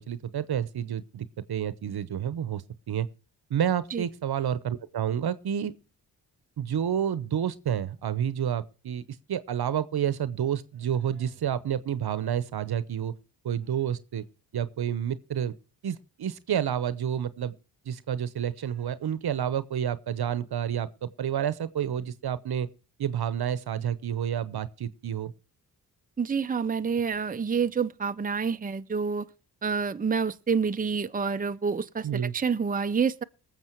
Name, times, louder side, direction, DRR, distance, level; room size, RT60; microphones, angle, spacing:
voice 1, 0.0-3.1 3.5-5.7 6.6-9.0 9.3-13.1 13.4-14.2 14.5-15.5 15.8-17.5 17.8-22.7 23.0-25.3 32.0-32.3, right 9 dB, 70° right, 0.9 m, -29 dB
voice 2, 26.2-29.3 29.6-33.2, right 5 dB, 20° right, 0.7 m, -28 dB
20.0 x 7.4 x 4.6 m
cardioid pair, 55°, 40 cm